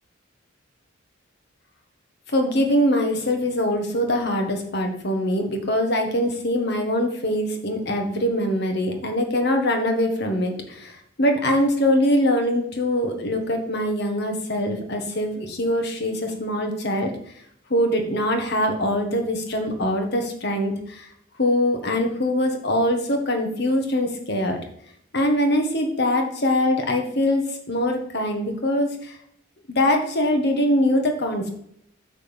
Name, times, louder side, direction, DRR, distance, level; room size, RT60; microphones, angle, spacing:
voice 1, 2.3-17.1 17.7-21.1 21.4-24.6 25.1-29.2 29.7-31.5, left 1 dB, 55° left, 4 dB, 1.5 m, -23 dB
9.0 x 3.8 x 7.1 m, 0.70 s
head